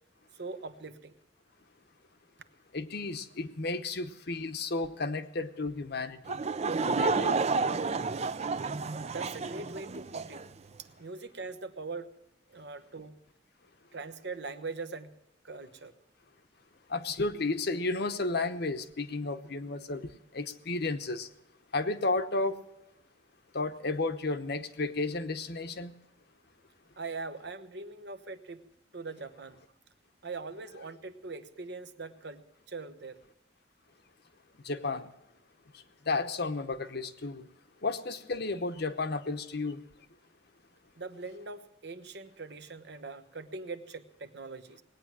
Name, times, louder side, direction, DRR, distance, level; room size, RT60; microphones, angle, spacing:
voice 1, 0.3-1.2 9.0-10.4 11.0-12.1 12.5-13.2 13.9-15.1 15.4-15.9 27.0-28.6 28.9-29.6 30.2-33.2 41.0-44.8, right 3 dB, 60° right, 10 dB, 1.0 m, -41 dB
voice 2, 2.7-6.4 6.9-7.4 16.9-20.1 20.3-21.3 21.7-22.6 23.5-25.9 34.6-35.1 36.1-37.5 37.8-39.8, left 3 dB, 55° left, 9 dB, 0.9 m, -32 dB
Laughter / Crowd, 6.3-10.5, right 4 dB, 35° right, 0.5 m, -30 dB
19.0 x 9.3 x 7.4 m, 0.86 s
head